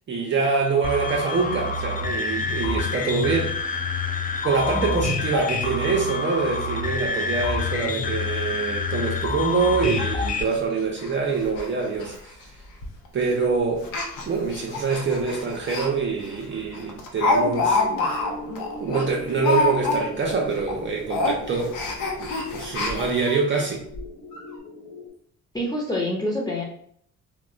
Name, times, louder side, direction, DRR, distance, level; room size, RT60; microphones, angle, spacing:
voice 1, 0.1-3.8 4.4-12.4 13.1-13.9 14.3-17.8 18.8-21.8 22.2-23.8, right 4 dB, 40° right, 0 dB, 0.5 m, -25 dB
sound 1, 0.8-10.4, left 4 dB, 30° left, 0.3 m, -27 dB
Speech, 9.1-9.2 9.5-9.6 10.0-10.1 10.4-10.5 11.0-11.1 11.4-11.7 11.9-12.1 12.8-13.1 13.8-15.9 16.3-16.4 16.7-20.3 20.6-20.8 21.1-23.4 23.9-24.0 24.3-24.4, left 3 dB, 85° left, 0.6 m, -26 dB
sound 2, 17.6-25.1, left 2 dB, 55° left, 0.9 m, -40 dB
voice 2, 25.5-26.6, left 1 dB, 15° left, -3 dB, 0.8 m, -26 dB
2.2 x 2.1 x 3.7 m, 0.64 s
cardioid pair, 90°, 30 cm